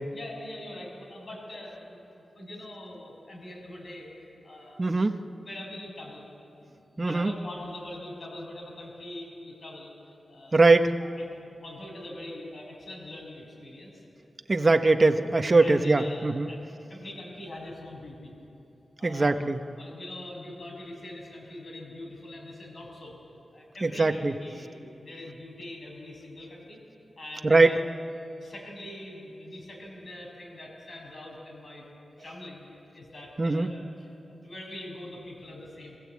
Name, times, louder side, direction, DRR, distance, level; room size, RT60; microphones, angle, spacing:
voice 1, 0.1-4.1 4.4-4.9 5.4-6.3 6.5-9.9 10.3-10.6 11.2-11.3 11.6-14.0 14.5-14.7 15.6-16.6 16.9-18.3 19.0-19.4 19.8-23.2 23.5-26.8 27.2-27.8 28.4-31.9 32.2-36.0, left 1 dB, 55° left, -1 dB, 7.0 m, -43 dB
voice 2, 4.8-5.2 7.0-7.3 10.5-10.9 14.5-16.5 19.0-19.6 23.8-24.3 27.4-27.7 33.4-33.7, right 3 dB, 35° right, 6 dB, 1.0 m, -21 dB
25.5 x 16.0 x 8.6 m, 2.8 s
wide cardioid pair, 95°, 0 cm